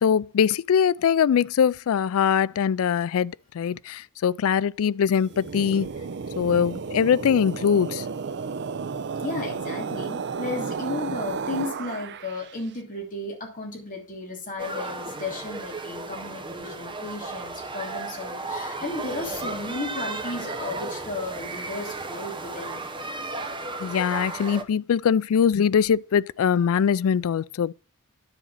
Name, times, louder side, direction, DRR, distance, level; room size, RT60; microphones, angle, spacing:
voice 1, 0.0-5.9 6.4-8.0 23.8-27.7, left 7 dB, 65° left, 0.3 m, -22 dB
sound 1, 5.2-12.6, right 5 dB, 55° right, 0.6 m, -33 dB
voice 2, 9.2-22.8, left 2 dB, 40° left, 2.9 m, -34 dB
sound 2, 14.6-24.6, right 3 dB, 20° right, 1.0 m, -34 dB
9.9 x 4.1 x 7.2 m
head